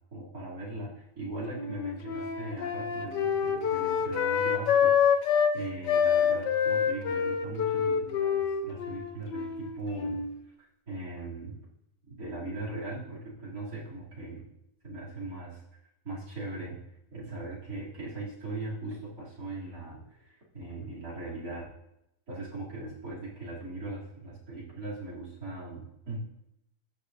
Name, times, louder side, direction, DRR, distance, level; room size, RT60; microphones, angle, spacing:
voice 1, 0.1-4.9 5.5-10.2 10.6-11.6 12.1-14.4 14.8-15.6 16.0-16.8 17.1-21.7 22.3-26.2, right 2 dB, 55° right, -5 dB, 3.5 m, -39 dB
Wind instrument woodwind instrument, 1.5-5.6 5.9-10.3, left 7 dB, 85° left, 1.5 m, -27 dB
17.5 x 6.7 x 2.7 m, 0.86 s
omnidirectional pair, 1.9 m